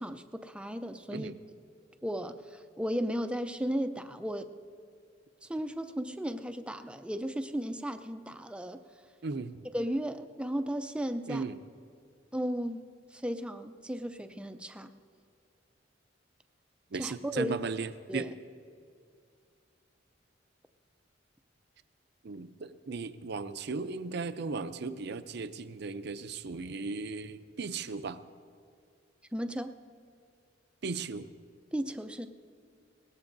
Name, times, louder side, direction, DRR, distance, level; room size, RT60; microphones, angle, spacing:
voice 1, 0.0-1.3 2.0-4.5 5.4-8.8 9.7-11.5 12.3-12.8 13.1-14.9 17.0-17.6 18.1-18.3 29.3-29.8 31.7-32.3, equal, 5° right, 8 dB, 0.5 m, -35 dB
voice 2, 9.2-9.6 11.3-11.6 16.9-18.3 22.2-28.2 30.8-31.3, right 4 dB, 60° right, 12 dB, 0.5 m, -36 dB
21.0 x 18.5 x 2.6 m, 2.3 s
head